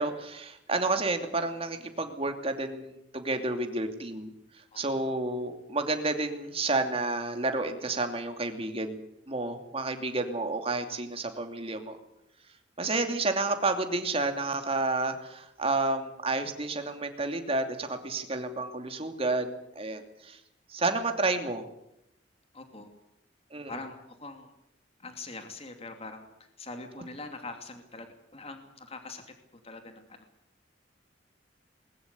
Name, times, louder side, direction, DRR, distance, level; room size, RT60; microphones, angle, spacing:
voice 1, 0.0-4.3 4.8-9.0 9.3-12.0 12.8-20.4 20.7-21.7 23.5-23.7, right 2 dB, 30° right, 6 dB, 2.7 m, -30 dB
voice 2, 4.7-5.1 22.5-22.9 23.7-24.5 25.0-26.3 26.6-29.2 29.5-30.2, left 3 dB, 35° left, 6 dB, 2.8 m, -43 dB
21.0 x 20.5 x 8.4 m, 0.81 s
head